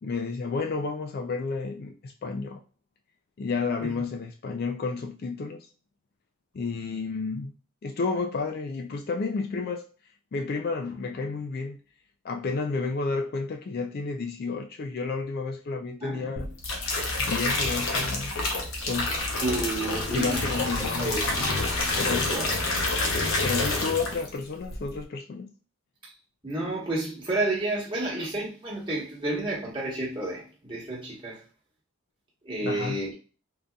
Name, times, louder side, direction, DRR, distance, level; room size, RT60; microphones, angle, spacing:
voice 1, 0.0-2.6 3.4-5.6 6.5-7.5 7.8-9.9 10.3-11.8 12.2-16.5 17.2-18.4 18.8-19.2 20.1-21.6 21.9-22.3 23.4-25.5 32.6-33.0, left 4 dB, 45° left, 0.3 m, -31 dB
voice 2, 16.0-16.5 18.8-18.9 19.4-20.5 21.0-21.3 22.3-22.5 26.0-26.1 26.4-31.4 32.4-33.1, right 2 dB, 20° right, 1.2 m, -31 dB
sound 1, 16.4-24.4 24.7-25.0, left 2 dB, 65° left, 0.8 m, -28 dB
3.7 x 2.7 x 2.3 m
head